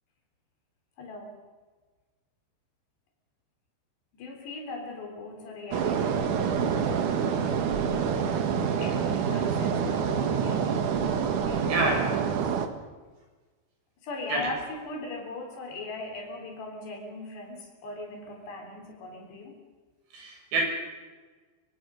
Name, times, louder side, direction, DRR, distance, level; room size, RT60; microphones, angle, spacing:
voice 1, 1.0-1.4 4.1-6.5 7.5-10.9 11.4-12.6 14.0-19.6, left 2 dB, 85° left, 2 dB, 5.8 m, -40 dB
sound 1, 5.7-12.7, right 7 dB, 60° right, 2.7 m, -27 dB
voice 2, 11.7-12.0 14.3-14.4 20.1-20.6, right 3 dB, 90° right, 0 dB, 9.0 m, -27 dB
25.0 x 24.5 x 6.4 m, 1.3 s
omnidirectional pair, 4.8 m